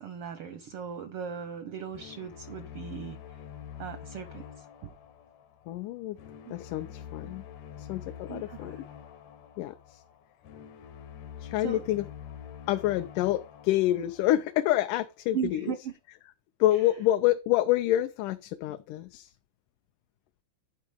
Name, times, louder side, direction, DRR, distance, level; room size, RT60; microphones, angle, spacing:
voice 1, 0.0-3.2 3.8-4.9 6.4-6.5 8.3-8.7 11.6-11.8 15.3-15.9, right 8 dB, 80° right, 1.2 m, -37 dB
sound 1, 1.9-15.0, left 9 dB, 70° left, 2.1 m, -46 dB
voice 2, 5.7-6.2 6.5-7.4 7.8-8.8 9.6-10.0 11.4-12.1 12.7-15.7 16.6-19.3, left 14 dB, 85° left, 2.2 m, -27 dB
11.0 x 4.6 x 5.1 m
omnidirectional pair, 3.6 m